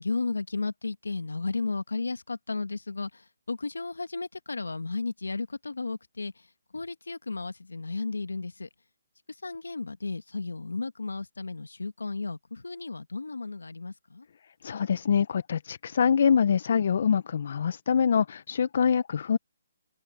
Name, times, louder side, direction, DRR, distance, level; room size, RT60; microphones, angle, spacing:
voice 1, 0.0-6.3 6.7-8.7 9.3-14.3, left 3 dB, 90° left, 1.8 m, -34 dB
voice 2, 14.6-19.4, left 7 dB, 55° left, 0.7 m, -24 dB
hypercardioid pair, 150°, 0 cm